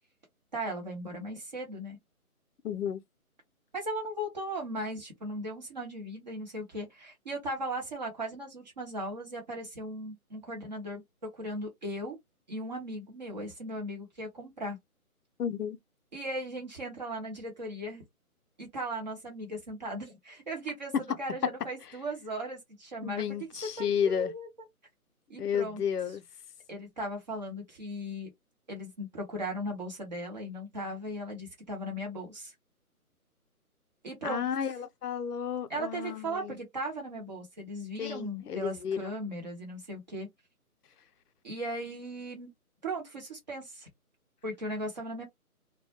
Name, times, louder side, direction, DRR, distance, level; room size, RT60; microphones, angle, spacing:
voice 1, 0.5-2.0 3.7-11.0 11.3-12.2 12.5-14.8 16.1-18.0 18.6-23.2 23.8-24.5 25.3-25.8 26.7-28.3 28.7-32.5 34.0-34.7 35.7-40.3 41.4-42.5 42.8-43.9 44.4-45.2, right 1 dB, 30° right, 0.9 m, -37 dB
voice 2, 2.6-3.0 15.4-15.8 23.0-24.3 25.4-26.2 34.2-36.6 38.0-39.1, left 8 dB, 90° left, 0.6 m, -32 dB
2.2 x 2.1 x 2.8 m
figure-of-eight pair, 160°, 45 cm